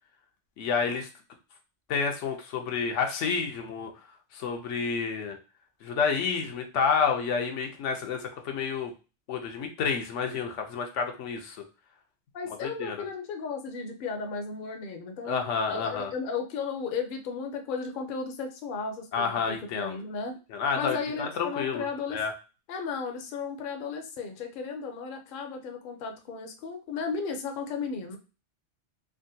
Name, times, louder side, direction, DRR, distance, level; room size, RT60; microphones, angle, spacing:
voice 1, 0.6-1.1 1.9-3.9 4.3-5.4 5.8-8.9 9.3-11.6 12.6-13.0 15.3-16.1 19.1-20.0 20.5-22.3, left 5 dB, 80° left, 4 dB, 0.9 m, -29 dB
voice 2, 12.3-15.4 15.7-20.4 20.7-22.2 22.7-28.2, left 5 dB, 55° left, 4 dB, 0.7 m, -34 dB
3.5 x 2.2 x 2.6 m, 0.32 s
omnidirectional pair, 1.2 m